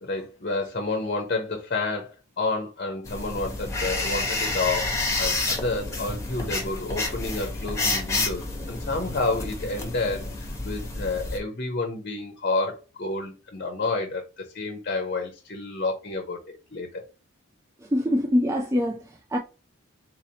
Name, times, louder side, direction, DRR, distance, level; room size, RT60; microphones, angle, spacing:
voice 1, 0.0-4.9 5.2-17.0, left 3 dB, 45° left, 0.7 m, -30 dB
sound 1, 3.0-11.4, left 2 dB, 15° left, 1.0 m, -29 dB
voice 2, 17.9-19.4, left 1 dB, 15° right, 0.4 m, -24 dB
4.0 x 2.7 x 2.8 m
head